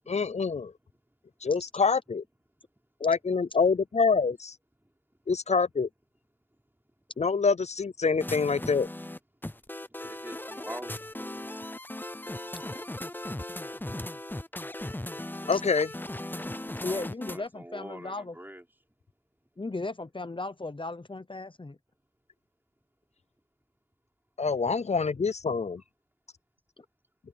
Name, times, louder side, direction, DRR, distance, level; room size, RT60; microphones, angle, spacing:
voice 1, 0.1-0.7 1.4-2.2 3.0-4.5 5.3-5.9 7.2-8.9 15.5-15.9 24.4-25.8, left 5 dB, 85° left, 0.4 m, -26 dB
sound 1, 8.2-17.5, left 1 dB, 15° left, 0.6 m, -38 dB
voice 2, 9.9-11.4 16.6-18.6, right 1 dB, 20° right, 5.5 m, -44 dB
voice 3, 16.8-18.3 19.6-21.8 26.8-26.9, left 2 dB, 50° left, 0.8 m, -36 dB
wide cardioid pair, 45°, 11 cm